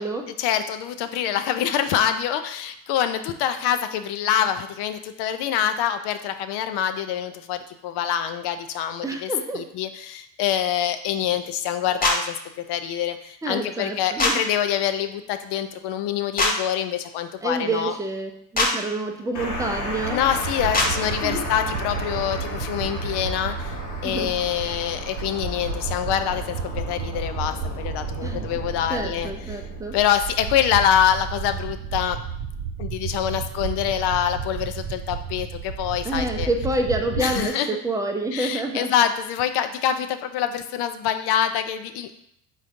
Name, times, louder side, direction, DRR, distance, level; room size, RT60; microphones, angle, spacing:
voice 1, 0.4-9.3 9.5-17.9 20.1-23.8 24.0-29.3 29.9-32.2 32.8-36.5 37.2-37.7 38.3-42.1, left 10 dB, 60° left, 9 dB, 0.5 m, -25 dB
voice 2, 9.0-9.6 13.4-14.4 17.4-20.2 21.2-21.4 24.0-24.3 28.2-28.5 28.9-29.9 36.0-38.9, right 2 dB, 5° right, 3 dB, 0.5 m, -28 dB
sound 1, 12.0-12.2 14.2-14.3 16.4-16.5 18.5-18.7 20.7-20.9, left 2 dB, 20° left, 0.9 m, -20 dB
sound 2, 19.3-29.8, left 2 dB, 80° left, 1.1 m, -35 dB
sound 3, 19.4-37.5, right 6 dB, 55° right, 0.7 m, -32 dB
4.1 x 3.7 x 2.6 m, 0.73 s
hypercardioid pair, 70°, 47 cm